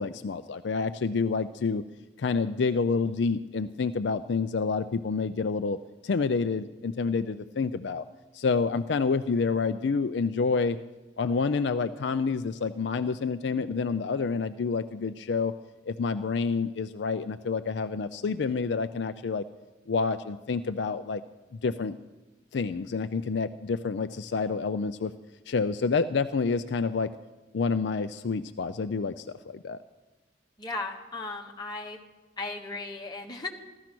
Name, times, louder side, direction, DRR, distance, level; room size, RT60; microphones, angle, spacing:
voice 1, 0.0-1.8 2.2-5.8 6.0-8.0 8.3-10.8 11.2-15.5 15.9-19.4 19.9-21.2 21.6-22.0 22.5-25.1 25.5-27.1 27.5-29.8, left 4 dB, 65° left, 10 dB, 0.4 m, -28 dB
voice 2, 30.6-32.0 32.4-33.5, left 3 dB, 20° left, -1 dB, 1.5 m, -36 dB
15.5 x 13.0 x 6.0 m, 1.2 s
head